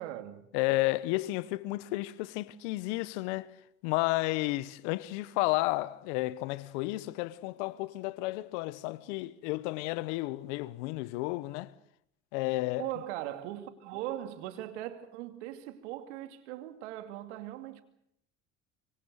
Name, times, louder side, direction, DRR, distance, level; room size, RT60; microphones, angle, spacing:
voice 1, 0.0-0.5 12.8-17.8, right 13 dB, 80° right, 2.5 m, -39 dB
voice 2, 0.5-3.5 3.8-11.7 12.3-12.9, left 20 dB, 75° left, 1.2 m, -32 dB
25.5 x 24.0 x 6.6 m
hypercardioid pair, 70°, 34 cm